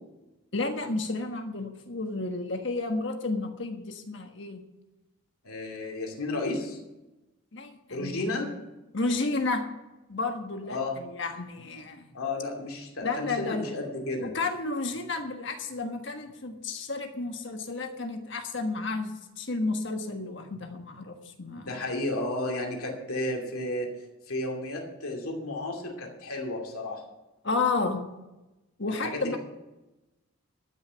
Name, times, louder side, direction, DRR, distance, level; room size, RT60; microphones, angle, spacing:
voice 1, 0.5-4.6 7.5-8.2 8.9-9.6 10.1-12.1 13.0-13.7 14.2-21.7 27.4-28.1 28.8-29.4, left 3 dB, 55° left, 5 dB, 1.5 m, -32 dB
voice 2, 5.4-6.8 7.9-8.5 10.7-11.0 12.1-14.3 21.4-23.9 24.3-27.0 28.9-29.4, left 2 dB, 90° left, 1 dB, 2.6 m, -33 dB
12.0 x 6.6 x 8.8 m, 1.0 s
head